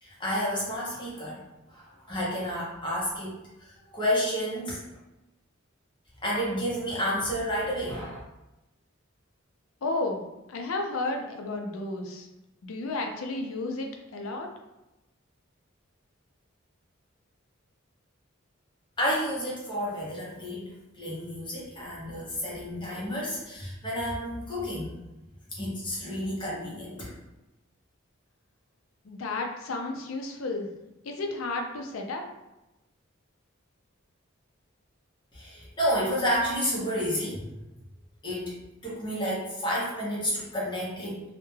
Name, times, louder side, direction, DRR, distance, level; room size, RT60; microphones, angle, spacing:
voice 1, 0.0-1.4 1.7-3.3 3.6-4.8 6.2-8.2 19.0-25.0 25.5-27.1 35.3-37.5 38.2-38.5 38.8-41.2, equal, 25° left, -6 dB, 0.6 m, -30 dB
voice 2, 9.8-10.2 10.5-12.3 12.6-14.5 29.0-30.7 31.0-32.2, left 2 dB, 80° left, 3 dB, 0.4 m, -32 dB
2.2 x 2.1 x 3.1 m, 0.99 s
head